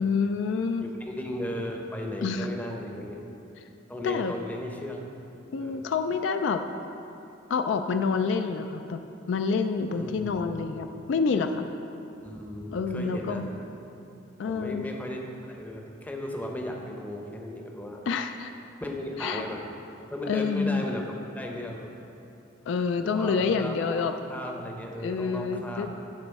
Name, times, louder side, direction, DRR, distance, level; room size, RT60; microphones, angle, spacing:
voice 1, 0.0-0.9 2.2-2.5 4.0-4.3 5.5-6.6 7.5-9.0 9.3-11.7 12.7-13.5 14.4-14.9 18.1-18.5 19.2-19.4 20.3-20.8 22.7-24.1 25.0-26.0, left 5 dB, 65° left, 8 dB, 0.3 m, -27 dB
voice 2, 0.8-3.2 3.9-5.0 5.6-5.9 9.9-10.6 12.2-13.4 14.5-15.2 15.5-18.0 18.8-19.6 20.1-21.9 23.0-26.0, left 1 dB, 10° left, 1 dB, 0.6 m, -36 dB
10.5 x 4.0 x 4.6 m, 2.8 s
head